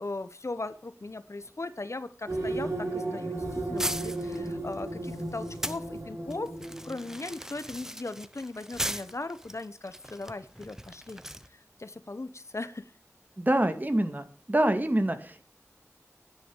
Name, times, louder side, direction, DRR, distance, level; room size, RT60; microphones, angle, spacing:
voice 1, 0.0-6.5 6.8-11.2 11.5-12.9, left 2 dB, 60° left, 12 dB, 1.0 m, -38 dB
sound 1, 2.3-7.1, right 2 dB, 65° right, 6.9 m, -34 dB
sound 2, 3.8-5.8 6.3-11.5, equal, 10° right, 0.8 m, -38 dB
voice 2, 13.4-15.4, right 1 dB, 35° right, 8 dB, 2.0 m, -26 dB
10.5 x 10.0 x 7.2 m, 0.40 s
wide cardioid pair, 50°, 5 cm